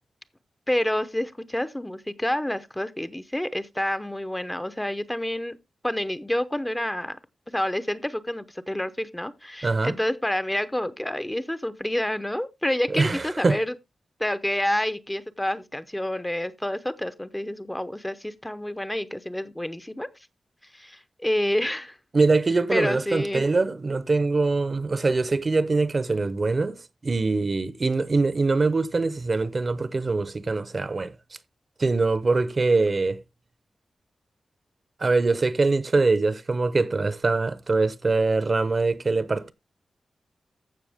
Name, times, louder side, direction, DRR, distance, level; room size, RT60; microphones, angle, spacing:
voice 1, 0.7-5.6 5.8-7.2 7.5-13.7 14.2-20.1 20.7-22.0 22.7-23.4, left 1 dB, 10° left, 0.6 m, -28 dB
voice 2, 9.6-10.0 12.9-13.6 22.1-26.8 27.0-31.1 31.8-33.2 35.0-39.5, right 3 dB, 40° right, 0.7 m, -23 dB
14.5 x 6.0 x 3.5 m
wide cardioid pair, 125°, 0 cm